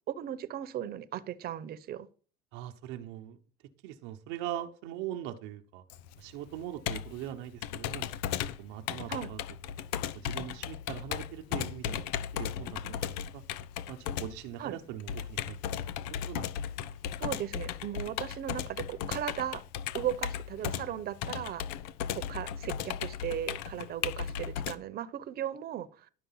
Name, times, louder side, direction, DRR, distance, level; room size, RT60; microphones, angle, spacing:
voice 1, 0.1-2.1 9.1-9.3 14.6-14.8 17.2-19.6 19.9-21.6 22.1-26.1, right 11 dB, 50° right, 1.0 m, -37 dB
voice 2, 2.5-3.4 3.8-5.8 6.2-8.1 8.6-9.4 10.1-12.0 12.3-13.4 13.9-15.6 16.2-16.9, right 12 dB, 75° right, 1.0 m, -41 dB
Computer keyboard, 5.9-24.8, left 9 dB, 85° left, 0.7 m, -36 dB
11.5 x 6.5 x 5.7 m
supercardioid pair, 105°, 21 cm